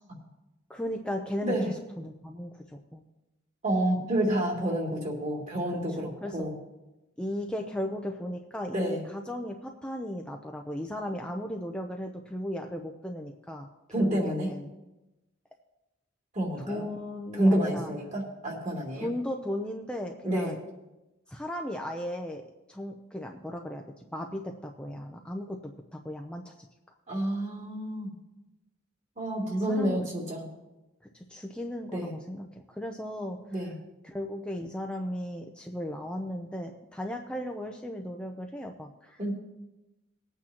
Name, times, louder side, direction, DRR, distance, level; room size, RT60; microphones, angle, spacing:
voice 1, 0.7-3.0 5.9-6.5 7.2-13.7 14.0-14.7 16.6-17.9 19.0-20.6 21.3-22.4 22.7-23.8 24.1-25.6 25.9-26.5 29.7-30.1 31.1-33.4 34.0-39.2, left 1 dB, 5° left, 2 dB, 0.6 m, -36 dB
voice 2, 3.6-6.5 8.7-9.0 13.9-14.5 16.3-16.9 17.3-19.1 20.2-20.5 27.1-28.1 29.2-30.5 31.9-32.1 33.5-33.7 39.2-39.3, right 1 dB, 40° right, -2 dB, 3.0 m, -29 dB
20.5 x 8.7 x 2.9 m, 1.0 s
head